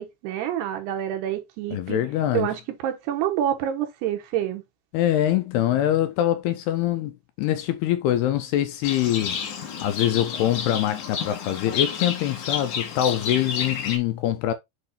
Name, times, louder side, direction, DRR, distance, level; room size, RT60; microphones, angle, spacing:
voice 1, 0.0-2.0 2.3-4.6, right 11 dB, 75° right, 2.9 m, -27 dB
voice 2, 1.7-2.5 4.9-14.5, left 12 dB, 80° left, 2.4 m, -24 dB
Livestock farm animals working animals, 8.8-14.0, left 7 dB, 60° left, 2.2 m, -30 dB
8.0 x 3.1 x 4.1 m
omnidirectional pair, 5.1 m